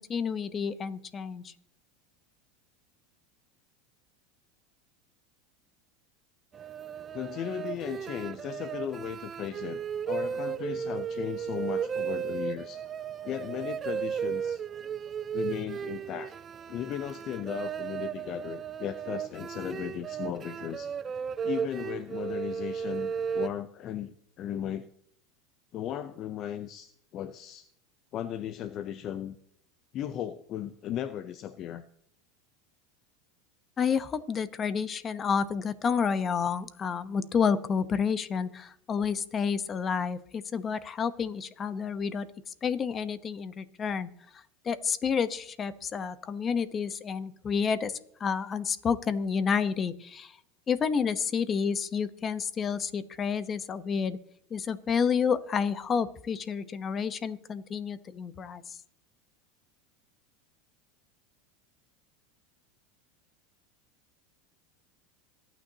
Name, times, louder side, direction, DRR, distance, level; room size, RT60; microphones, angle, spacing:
voice 1, 0.0-1.5 33.8-42.3 42.6-44.1 44.6-47.9 48.2-50.3 50.7-54.2 54.5-58.6, left 6 dB, 30° left, 13 dB, 1.0 m, -29 dB
sound 1, 6.5-23.5, right 7 dB, 30° right, 0.5 m, -35 dB
voice 2, 7.1-9.8 10.1-12.8 13.2-14.6 15.3-16.3 16.7-20.9 21.4-24.9 25.7-27.7 28.1-29.4 29.9-31.8, left 10 dB, 45° left, 12 dB, 0.6 m, -36 dB
26.0 x 9.2 x 2.9 m, 0.68 s
supercardioid pair, 115°, 0 cm